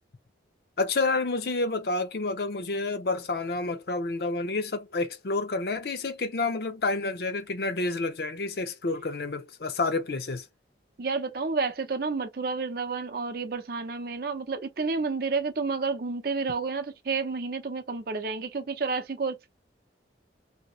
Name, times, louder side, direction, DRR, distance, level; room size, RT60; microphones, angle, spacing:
voice 1, 0.8-10.5, left 3 dB, 55° left, 0.6 m, -29 dB
voice 2, 11.0-19.5, right 4 dB, 55° right, 0.6 m, -30 dB
2.8 x 2.8 x 3.0 m
head